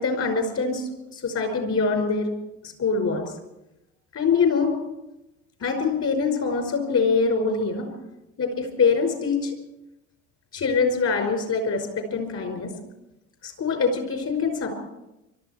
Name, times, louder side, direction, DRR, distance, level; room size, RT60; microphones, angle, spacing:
voice 1, 0.0-2.3 2.8-3.2 4.1-4.8 5.6-7.9 8.4-9.5 10.5-12.7 13.4-14.7, left 4 dB, 40° left, 5 dB, 5.2 m, -24 dB
24.5 x 13.0 x 4.4 m, 0.93 s
hypercardioid pair, 65°, 38 cm